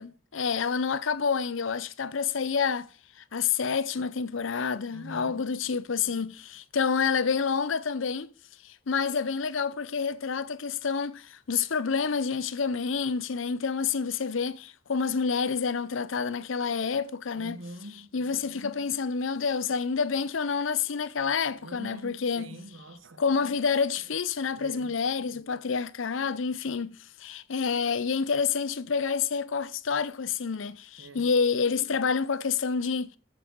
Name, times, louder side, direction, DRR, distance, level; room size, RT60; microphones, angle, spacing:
voice 1, 0.0-2.9 3.3-8.3 8.6-17.6 18.1-22.6 23.2-33.1, left 5 dB, 80° left, 0.6 m, -28 dB
voice 2, 4.9-5.5 17.3-18.1 21.6-23.2 24.5-24.9 31.0-31.3, right 1 dB, 80° right, 1.0 m, -44 dB
13.5 x 6.9 x 4.6 m
head